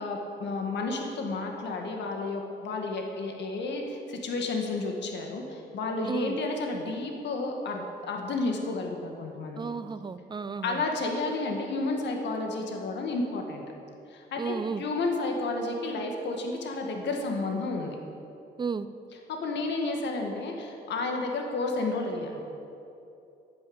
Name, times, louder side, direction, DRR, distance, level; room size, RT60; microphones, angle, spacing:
voice 1, 0.0-9.6 10.6-13.6 14.1-18.0 19.3-22.4, left 3 dB, 80° left, 2 dB, 1.9 m, -31 dB
voice 2, 6.0-6.4 9.5-10.8 14.4-14.8 18.6-18.9, right 5 dB, 25° right, 13 dB, 0.6 m, -33 dB
11.5 x 9.5 x 8.7 m, 2.8 s
cardioid pair, 100°, 18 cm